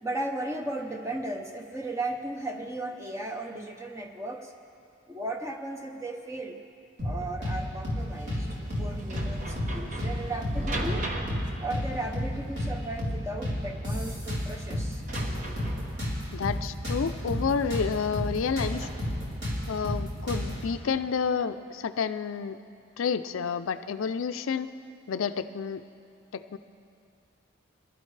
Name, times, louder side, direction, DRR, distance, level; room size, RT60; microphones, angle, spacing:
voice 1, 0.0-4.5 5.1-6.6 7.0-11.1 11.6-15.0, right 2 dB, 15° right, 3 dB, 0.7 m, -36 dB
sound 1, 7.0-7.6 7.8-8.0 8.3-9.3 9.6-9.7 10.0-11.0 11.3-11.4 11.7-12.7 13.0-13.1 13.4-14.9 15.1-17.9 18.1-18.3 18.6-20.6, left 1 dB, 55° right, 3.6 m, -31 dB
sound 2, 8.0-19.7, right 1 dB, 40° right, 1.0 m, -39 dB
voice 2, 16.3-18.9 19.7-22.6 23.0-24.7 25.1-25.8 26.3-26.6, left 6 dB, 80° left, 11 dB, 0.4 m, -30 dB
22.5 x 12.0 x 3.3 m, 2.5 s
head